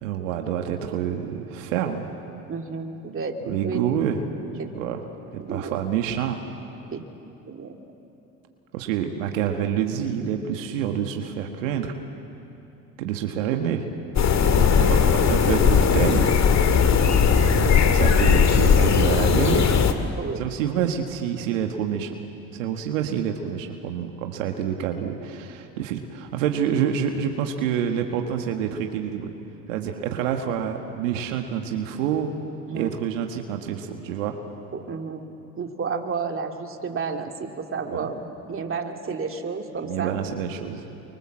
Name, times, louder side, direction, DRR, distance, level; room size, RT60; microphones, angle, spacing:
voice 1, 0.0-2.1 3.5-4.2 4.7-5.0 5.3-6.4 8.7-11.9 13.0-13.9 14.9-15.0 15.3-16.4 17.4-19.8 20.4-22.2 22.5-29.3 29.7-32.3 32.7-34.4 37.9-38.1 39.8-40.8, right 9 dB, 90° right, 4 dB, 1.7 m, -27 dB
voice 2, 2.5-3.8 4.6-4.7 5.4-5.7 6.9-7.1 7.5-7.8 14.5-14.9 20.2-20.5 32.7-33.0 34.7-35.3 35.6-40.2, right 5 dB, 35° right, 3 dB, 2.6 m, -31 dB
sound 1, 14.2-19.9, left 6 dB, 45° left, 2.2 m, -18 dB
27.0 x 24.5 x 7.5 m, 2.9 s
hypercardioid pair, 70°, 37 cm